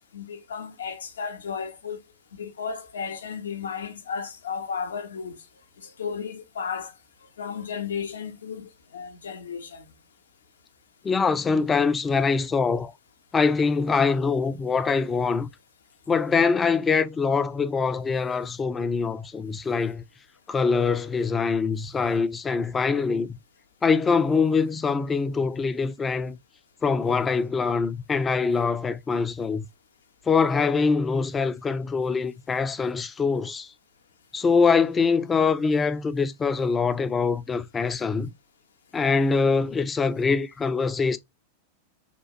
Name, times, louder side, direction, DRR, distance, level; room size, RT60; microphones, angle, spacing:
voice 1, 0.1-2.0 2.3-5.4 5.8-6.9 7.4-9.9, left 6 dB, 70° left, 0.6 m, -34 dB
voice 2, 11.0-12.9 13.3-15.5 16.1-20.0 20.5-23.3 23.8-26.4 26.8-29.7 30.3-33.7 34.3-38.3 38.9-41.2, left 5 dB, 20° left, 0.3 m, -24 dB
2.9 x 2.3 x 2.9 m
figure-of-eight pair, 90°, 0 cm